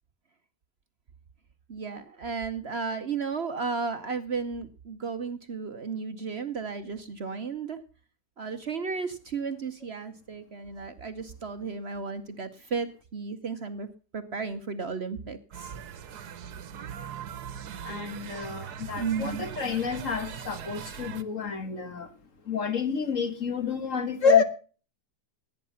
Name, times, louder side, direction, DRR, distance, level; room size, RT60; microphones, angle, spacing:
voice 1, 1.7-7.8 8.4-12.9 13.1-13.9 14.1-15.7 19.0-19.4, right 5 dB, 45° right, 1.0 m, -34 dB
sound 1, 15.5-21.2, right 8 dB, 75° right, 1.5 m, -40 dB
voice 2, 17.8-22.1 22.5-24.4, left 6 dB, 55° left, 1.8 m, -28 dB
17.0 x 9.4 x 5.6 m
omnidirectional pair, 1.7 m